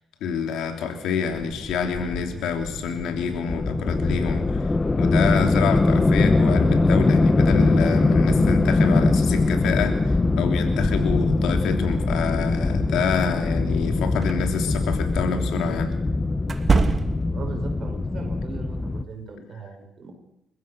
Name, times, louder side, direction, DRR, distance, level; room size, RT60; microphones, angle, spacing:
voice 1, 0.2-4.7 5.0-15.9, left 6 dB, 85° left, 5 dB, 3.2 m, -27 dB
sound 1, 1.4-19.0, left 2 dB, 20° left, 1.1 m, -22 dB
sound 2, 14.2-14.4 16.4-17.4, right 4 dB, 35° right, 2.4 m, -23 dB
voice 2, 17.3-20.1, right 4 dB, 50° right, 3 dB, 6.4 m, -38 dB
29.0 x 15.0 x 6.8 m, 0.84 s
cardioid pair, 90°, 0 cm